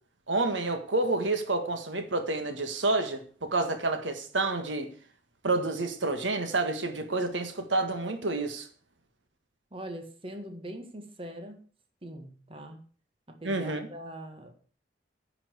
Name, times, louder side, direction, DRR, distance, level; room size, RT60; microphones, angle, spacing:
voice 1, 0.3-4.9 5.4-8.7 13.4-13.9, right 2 dB, 85° right, 1.6 m, -29 dB
voice 2, 9.7-11.7 12.0-12.8 13.3-14.5, right 1 dB, 30° right, 1.7 m, -42 dB
10.0 x 6.0 x 8.0 m
head